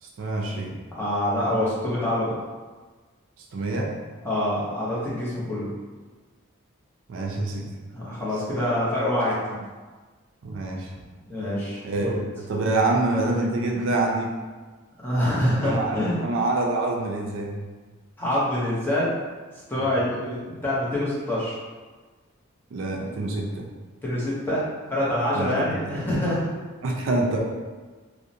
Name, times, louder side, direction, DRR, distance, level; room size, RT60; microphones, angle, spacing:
voice 1, 0.0-0.8 3.4-3.9 7.1-7.7 10.4-10.9 11.8-12.1 12.4-14.3 15.6-17.5 19.8-19.9 22.7-23.7 25.4-26.0 26.8-27.4, right 2 dB, 75° right, 0 dB, 0.4 m, -26 dB
voice 2, 1.0-2.4 4.2-5.7 7.9-9.6 11.3-12.2 15.0-16.2 18.2-19.2 19.7-21.6 24.0-24.6 24.9-26.5, left 1 dB, 10° left, -8 dB, 0.6 m, -25 dB
2.7 x 2.0 x 2.5 m, 1.4 s
head